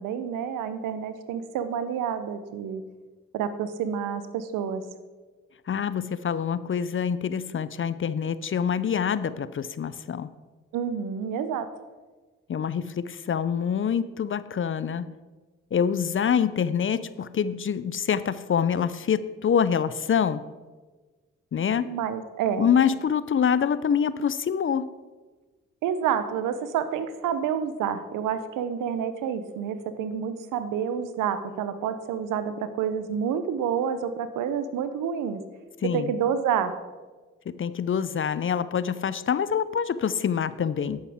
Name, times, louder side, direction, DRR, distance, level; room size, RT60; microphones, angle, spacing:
voice 1, 0.0-2.8 3.3-4.8 10.7-11.7 21.8-22.7 25.8-35.4 35.8-36.8, right 8 dB, 75° right, 11 dB, 0.8 m, -28 dB
voice 2, 5.7-10.3 12.5-15.1 15.7-20.4 21.5-21.9 22.6-24.9 35.8-36.1 37.5-41.0, left 7 dB, 40° left, 15 dB, 0.6 m, -26 dB
10.5 x 8.8 x 3.6 m, 1.3 s
hypercardioid pair, 40°, 32 cm